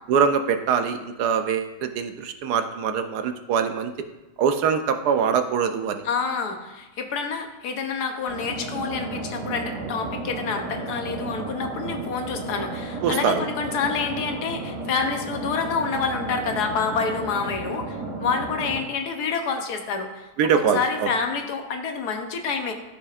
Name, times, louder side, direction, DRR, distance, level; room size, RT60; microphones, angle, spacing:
voice 1, 0.1-3.9 4.4-6.0 13.0-13.5 20.4-21.1, right 7 dB, 90° right, 8 dB, 1.2 m, -23 dB
voice 2, 6.0-20.3 20.5-22.7, left 5 dB, 85° left, 5 dB, 1.4 m, -28 dB
sound 1, 8.3-18.8, right 2 dB, 55° right, 1.9 m, -33 dB
13.5 x 5.0 x 2.4 m, 1.1 s
omnidirectional pair, 1.7 m